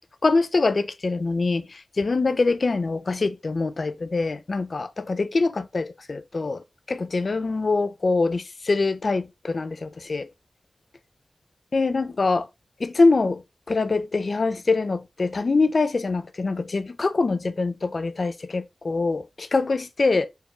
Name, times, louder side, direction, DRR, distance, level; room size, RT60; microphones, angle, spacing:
voice 1, 0.2-1.6 2.0-6.6 6.9-10.3 11.7-12.5 12.8-13.4 13.7-20.3, left 3 dB, 55° left, 0.5 m, -24 dB
4.7 x 3.4 x 2.9 m
wide cardioid pair, 90°, 0 cm